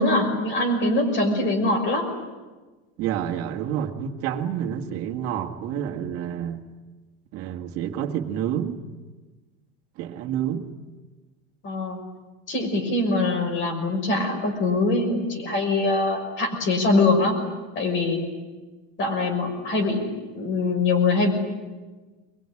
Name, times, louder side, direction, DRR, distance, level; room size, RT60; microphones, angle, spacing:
voice 1, 0.0-2.1 11.6-12.0 12.5-17.4 17.7-18.2 19.0-20.1 20.3-21.3, left 2 dB, 35° left, 4 dB, 5.8 m, -23 dB
voice 2, 3.0-6.6 7.3-8.8 10.0-10.7, right 9 dB, 50° right, 3 dB, 2.2 m, -28 dB
23.0 x 22.5 x 10.0 m, 1.3 s
cardioid pair, 165°, 32 cm